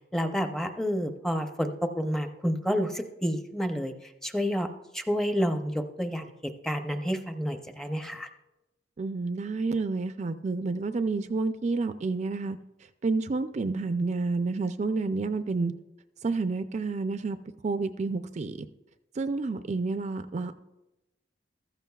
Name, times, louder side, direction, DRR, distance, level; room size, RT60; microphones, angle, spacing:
voice 1, 0.1-4.7 4.9-8.3, equal, 5° left, 7 dB, 0.6 m, -29 dB
voice 2, 9.0-12.6 13.0-15.7 16.2-17.4 17.6-18.7 19.2-20.5, right 3 dB, 40° right, 10 dB, 0.4 m, -29 dB
15.0 x 13.0 x 2.3 m, 0.96 s
head